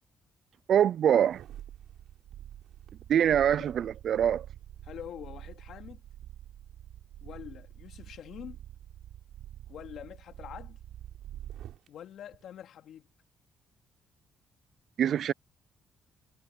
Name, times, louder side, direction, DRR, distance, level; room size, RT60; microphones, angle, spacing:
voice 1, 0.7-1.4 3.1-4.5 15.0-15.3, right 9 dB, 65° right, 0.5 m, -24 dB
sound 1, 1.3-11.9 12.3-12.4, right 11 dB, 80° right, 4.0 m, -47 dB
voice 2, 4.8-6.0 7.2-8.6 9.7-10.8 11.9-13.1, left 10 dB, 75° left, 3.0 m, -45 dB
cardioid pair, 90°, 0 cm